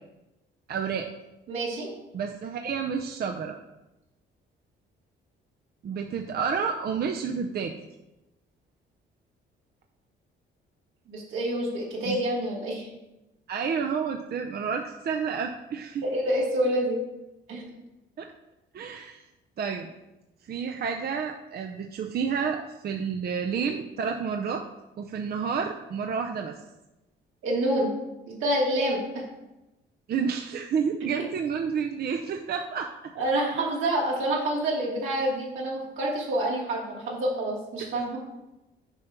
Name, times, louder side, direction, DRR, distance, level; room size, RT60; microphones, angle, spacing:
voice 1, 0.7-1.1 2.1-3.6 5.8-7.7 12.1-12.2 13.5-16.0 18.2-18.3 18.7-19.2 19.6-19.9 20.5-24.7 25.0-26.6 30.1-33.1, right 6 dB, 50° right, 3 dB, 0.6 m, -30 dB
voice 2, 1.5-1.9 11.1-12.9 16.0-17.0 17.5-17.6 27.4-27.9 28.3-29.2 33.2-38.2, right 1 dB, 85° right, -4 dB, 2.7 m, -27 dB
7.1 x 5.4 x 4.5 m, 0.97 s
cardioid pair, 90°, 20 cm